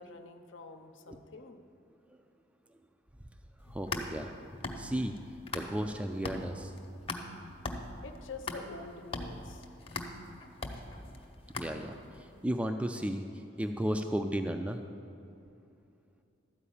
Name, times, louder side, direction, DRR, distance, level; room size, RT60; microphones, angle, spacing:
voice 1, 0.0-1.6 8.0-9.7, left 3 dB, 80° left, 6 dB, 0.7 m, -47 dB
sound 1, 3.6-5.9 6.3-12.2, left 2 dB, 30° left, 0.7 m, -40 dB
voice 2, 3.7-4.3 4.8-5.2 5.5-6.7 11.6-14.8, equal, 5° right, 5 dB, 0.3 m, -34 dB
12.5 x 4.8 x 8.5 m, 2.6 s
head